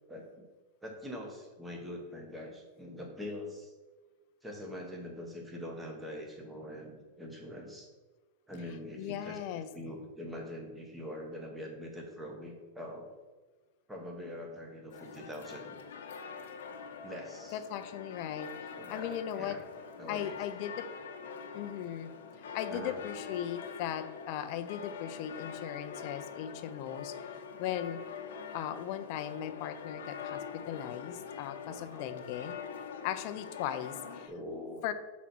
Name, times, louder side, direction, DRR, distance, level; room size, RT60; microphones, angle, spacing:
voice 1, 0.1-0.5 0.8-3.7 4.4-7.9 8.5-13.1 13.9-15.8 17.0-17.6 18.7-19.6 20.0-20.7 21.5-21.8 22.4-23.0 31.6-32.2 34.0-34.8, left 1 dB, 5° right, 0 dB, 1.1 m, -44 dB
voice 2, 9.0-9.7 17.5-19.6 20.1-20.9 21.5-22.1 22.5-27.3 27.6-28.0 28.5-32.6 33.0-34.3 34.8-34.9, left 10 dB, 45° left, 10 dB, 0.5 m, -38 dB
sound 1, 14.9-34.3, left 6 dB, 85° left, 0.9 m, -44 dB
6.1 x 4.1 x 6.0 m, 1.3 s
supercardioid pair, 155°, 0 cm